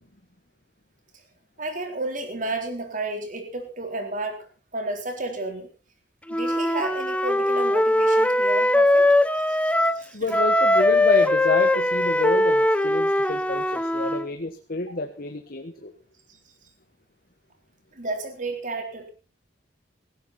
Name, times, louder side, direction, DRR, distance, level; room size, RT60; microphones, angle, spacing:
voice 1, 1.6-4.5 4.7-5.7 6.3-9.1 9.3-10.4 14.9-15.0 16.3-16.4 17.9-19.1, right 2 dB, 45° right, 5 dB, 4.1 m, -32 dB
Wind instrument woodwind instrument, 6.3-10.0 10.3-14.3, left 1 dB, 5° left, 0.8 m, -21 dB
voice 2, 10.1-15.9, left 2 dB, 55° left, 6 dB, 1.4 m, -29 dB
17.5 x 15.5 x 4.3 m, 0.36 s
head